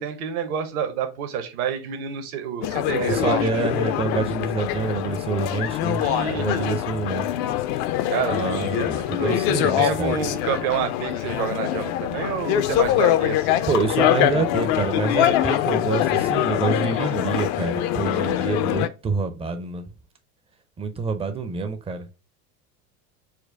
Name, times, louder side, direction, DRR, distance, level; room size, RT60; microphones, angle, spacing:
voice 1, 0.0-3.7 6.0-6.8 8.1-9.4 9.8-13.6, right 7 dB, 65° right, 1.0 m, -28 dB
sound 1, 2.6-18.9, left 12 dB, 45° left, 0.5 m, -24 dB
voice 2, 3.1-6.0 6.3-7.3 8.3-10.1 13.7-19.9 20.8-22.1, right 4 dB, 15° right, 0.5 m, -27 dB
4.4 x 2.2 x 3.3 m
hypercardioid pair, 80°, 47 cm